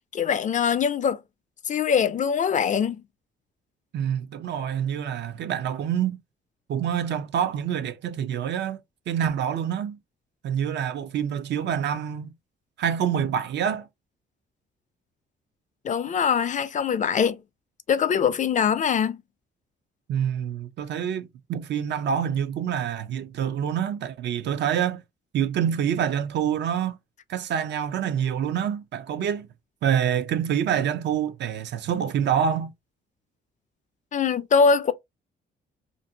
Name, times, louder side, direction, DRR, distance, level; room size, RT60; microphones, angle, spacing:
voice 1, 0.1-1.2 1.7-3.0 15.8-17.4 17.9-19.2 34.1-34.9, left 6 dB, 40° left, 0.4 m, -22 dB
voice 2, 3.9-6.2 6.7-10.0 10.4-12.3 12.8-13.9 20.1-25.0 25.3-27.0 27.3-29.5 29.8-32.7, right 8 dB, 60° right, 0.5 m, -26 dB
2.6 x 2.6 x 2.6 m
cardioid pair, 90°, 20 cm